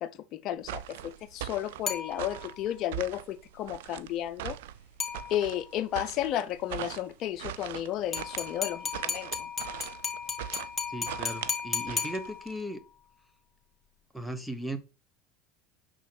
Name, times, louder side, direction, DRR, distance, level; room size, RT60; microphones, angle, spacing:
voice 1, 0.0-4.6 5.3-9.5, left 12 dB, 55° left, 0.7 m, -33 dB
sound 1, 0.6-12.6, right 14 dB, 85° right, 0.4 m, -41 dB
sound 2, 1.9-2.7 5.0-5.7 8.1-12.7, left 6 dB, 25° left, 1.4 m, -35 dB
voice 2, 10.9-12.8 14.1-14.8, right 1 dB, ahead, 1.0 m, -37 dB
6.2 x 4.1 x 4.0 m
supercardioid pair, 100°, 0 cm